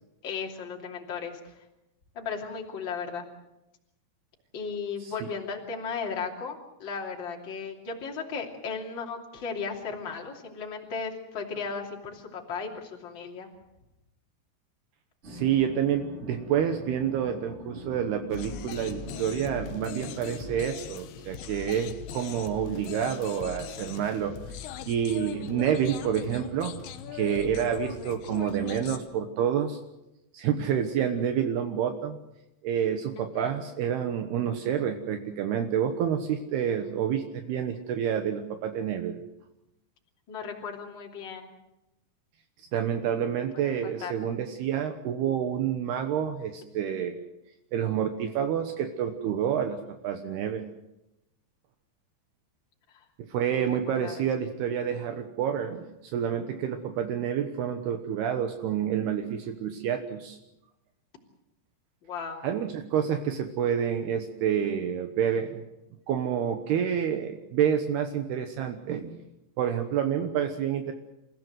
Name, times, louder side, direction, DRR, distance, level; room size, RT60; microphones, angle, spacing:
voice 1, 0.2-1.5 2.1-3.3 4.5-13.5 33.2-33.5 40.3-41.5 43.5-44.1 52.9-53.0 53.5-54.3 62.0-62.4, left 5 dB, 30° left, 1 dB, 3.0 m, -36 dB
sound 1, 15.2-20.6, equal, 15° right, 3.0 m, -43 dB
voice 2, 15.2-26.7 27.1-29.8 30.3-32.2 32.6-39.2 42.7-47.2 47.7-50.6 53.3-60.4 62.4-65.6 66.1-69.1 69.6-70.9, right 9 dB, 75° right, 6 dB, 3.1 m, -28 dB
sound 2, 18.3-29.0, left 9 dB, 90° left, 3.4 m, -40 dB
28.5 x 15.5 x 7.9 m, 0.91 s
omnidirectional pair, 4.9 m